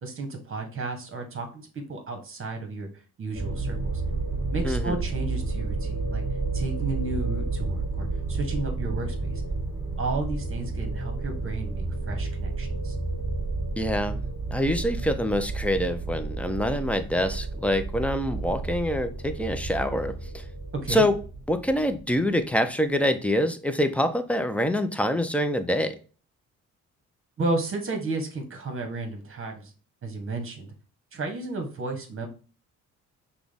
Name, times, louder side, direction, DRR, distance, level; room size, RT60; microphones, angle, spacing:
voice 1, 0.0-2.9 3.2-4.0 4.5-6.2 6.5-9.3 10.0-12.9 20.7-21.0 27.4-29.7 30.0-30.7 31.1-32.3, right 3 dB, 45° right, 4 dB, 1.4 m, -33 dB
sound 1, 3.3-22.2, right 3 dB, 20° right, 2.5 m, -31 dB
voice 2, 4.6-5.0 13.8-14.2 14.5-20.5 20.9-21.2 21.5-26.0, equal, 5° left, 9 dB, 0.6 m, -25 dB
6.0 x 2.3 x 3.6 m, 0.37 s
cardioid pair, 90°, 30 cm